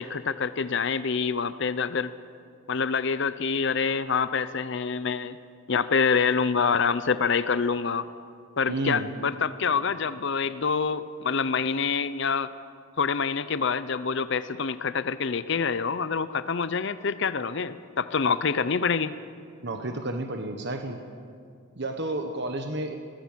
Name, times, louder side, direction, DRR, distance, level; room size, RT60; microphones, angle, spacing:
voice 1, 0.0-2.1 2.7-5.4 5.7-8.0 8.6-12.5 13.0-19.1, left 5 dB, 55° left, 13 dB, 0.6 m, -26 dB
voice 2, 8.7-9.1 19.6-21.0 21.8-22.9, right 2 dB, 55° right, 5 dB, 1.3 m, -31 dB
23.5 x 18.0 x 7.4 m, 2.2 s
head